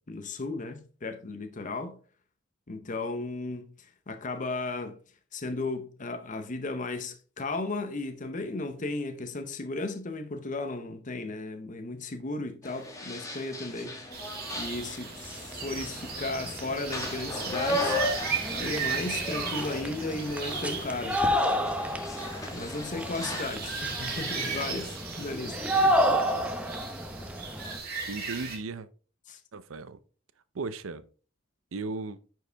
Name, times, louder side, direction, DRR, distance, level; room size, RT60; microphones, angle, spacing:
voice 1, 0.1-2.0 2.7-3.6 4.1-5.0 5.3-14.0 14.5-18.0 18.5-21.2 22.5-25.6 25.8-25.9 29.3-29.4, left 2 dB, 40° left, 0.8 m, -35 dB
sound 1, 12.6-23.4, left 1 dB, 15° left, 1.5 m, -36 dB
sound 2, 14.1-28.6, right 5 dB, 50° right, 2.3 m, -37 dB
sound 3, 14.7-14.8 15.1-27.8, equal, 5° right, 0.7 m, -31 dB
voice 2, 28.1-28.9 29.5-30.0 30.5-31.1 31.7-32.2, right 3 dB, 75° right, 0.6 m, -36 dB
9.6 x 4.8 x 3.4 m
head